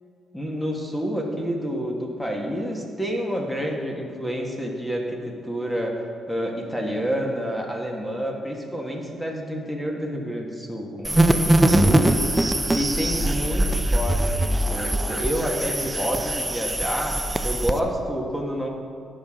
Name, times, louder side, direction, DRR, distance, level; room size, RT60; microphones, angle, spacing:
voice 1, 0.3-5.0 5.4-5.9 6.3-12.1 12.7-13.6 13.9-17.2 17.4-18.7, equal, 5° left, 0 dB, 1.7 m, -28 dB
sound 1, 11.0-17.8, right 1 dB, 15° right, 0.6 m, -22 dB
16.0 x 6.2 x 3.8 m, 2.2 s
cardioid pair, 70°, 0 cm